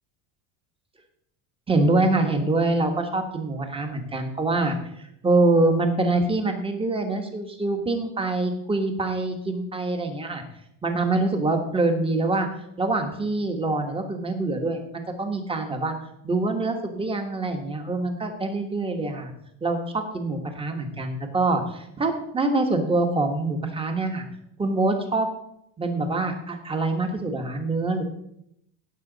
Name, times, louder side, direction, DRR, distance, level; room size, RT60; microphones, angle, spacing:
voice 1, 1.7-4.8 5.2-10.4 10.8-12.5 12.8-15.9 16.2-19.3 19.6-24.2 24.6-25.3 25.8-28.0, right 2 dB, 10° right, 5 dB, 1.2 m, -25 dB
16.5 x 6.0 x 4.0 m, 0.76 s
cardioid pair, 145°, 45 cm